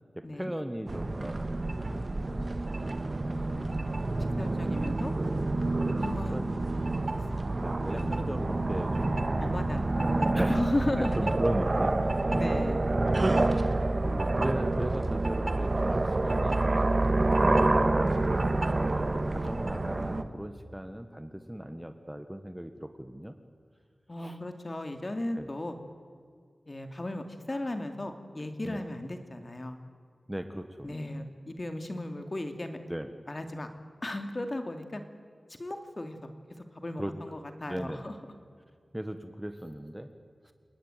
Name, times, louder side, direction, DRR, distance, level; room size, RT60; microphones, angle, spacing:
voice 1, 0.2-2.0 2.9-3.4 6.3-6.4 7.6-9.2 10.3-10.6 11.0-12.6 13.0-13.3 14.0-16.6 17.4-18.5 18.8-23.4 24.2-24.4 25.4-25.5 28.6-28.8 30.3-31.2 32.9-33.1 37.0-37.4 37.7-38.0 38.9-40.1 40.4-40.5, equal, 5° right, 8 dB, 1.5 m, -38 dB
sound 1, 0.9-20.2, right 2 dB, 40° right, 1.7 m, -28 dB
voice 2, 3.3-3.7 4.4-5.1 6.0-6.4 7.9-8.1 9.4-11.1 12.3-12.8 24.1-25.7 26.7-29.8 30.8-32.8 33.3-33.7 34.0-35.0 35.6-36.3 36.7-38.2, left 1 dB, 35° left, 6 dB, 2.6 m, -35 dB
29.5 x 19.5 x 9.2 m, 2.1 s
wide cardioid pair, 90°, 0 cm